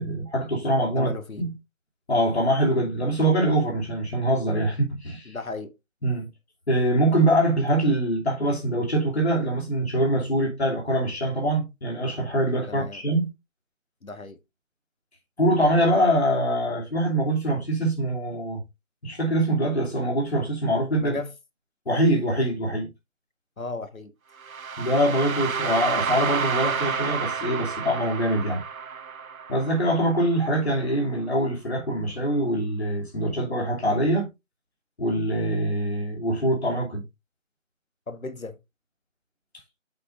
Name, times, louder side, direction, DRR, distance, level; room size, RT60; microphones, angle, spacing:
voice 1, 0.0-1.1 1.4-1.5 2.1-5.4 6.0-6.3 6.7-13.3 15.4-18.6 19.0-21.2 21.9-22.9 24.8-28.6 29.5-34.3 35.0-37.0, right 1 dB, 50° left, 2.9 m, -24 dB
voice 2, 1.0-1.4 5.2-5.7 12.7-13.0 14.0-14.4 21.0-21.3 23.6-24.1 38.1-38.6, left 3 dB, 85° left, 1.5 m, -35 dB
sound 1, 24.4-30.4, right 6 dB, 90° right, 0.7 m, -30 dB
8.3 x 7.4 x 2.5 m
figure-of-eight pair, 175°, 40 cm